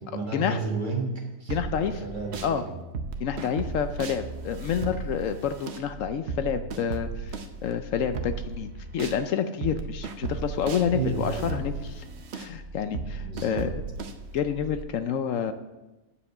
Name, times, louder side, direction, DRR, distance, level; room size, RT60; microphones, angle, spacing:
voice 1, 0.0-2.8 10.9-11.6 13.2-13.7, right 3 dB, 35° right, 0 dB, 1.5 m, -32 dB
voice 2, 1.5-2.0 2.4-2.6 3.2-12.1 12.3-13.8 14.3-15.5, left 7 dB, 75° left, 9 dB, 1.0 m, -29 dB
sound 1, 1.5-2.5 2.9-9.2 9.6-14.8, right 4 dB, 60° right, 1.0 m, -36 dB
10.0 x 5.0 x 6.7 m, 1.1 s
omnidirectional pair, 1.4 m